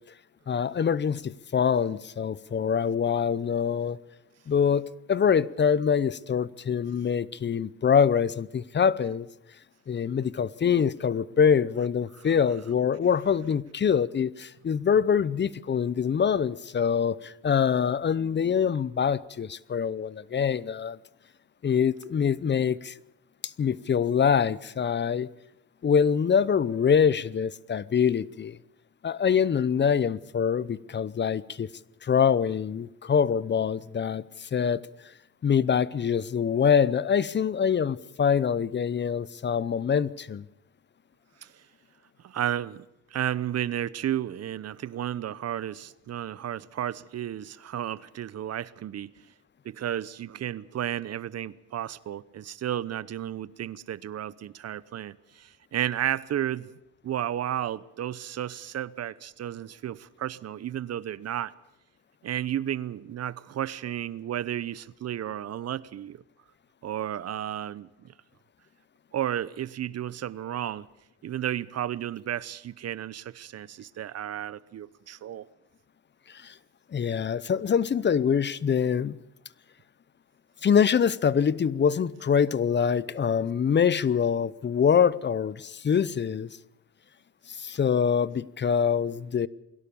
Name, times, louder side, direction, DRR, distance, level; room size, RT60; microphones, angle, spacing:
voice 1, 0.5-4.0 4.5-9.3 9.9-21.0 21.6-23.0 23.4-25.3 25.8-28.6 29.0-31.7 32.0-34.8 35.4-40.4 76.3-76.5 76.9-79.2 80.6-86.6 87.5-89.5, left 7 dB, 35° left, 0.7 m, -24 dB
voice 2, 42.2-42.8 43.1-49.1 49.6-56.7 57.0-61.5 62.2-66.2 66.8-67.9 69.1-70.9 71.2-75.4, right 11 dB, 55° right, 0.8 m, -33 dB
22.0 x 17.0 x 7.0 m
cardioid pair, 90°, 30 cm